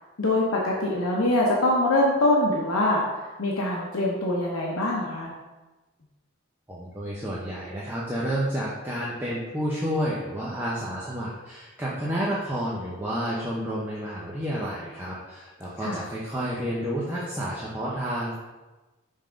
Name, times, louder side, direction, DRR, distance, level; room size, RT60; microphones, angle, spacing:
voice 1, 0.2-5.3 15.8-16.0, left 1 dB, 85° left, -3 dB, 0.8 m, -24 dB
voice 2, 6.7-18.4, equal, 10° right, -7 dB, 0.7 m, -30 dB
5.6 x 3.6 x 5.0 m, 1.2 s
head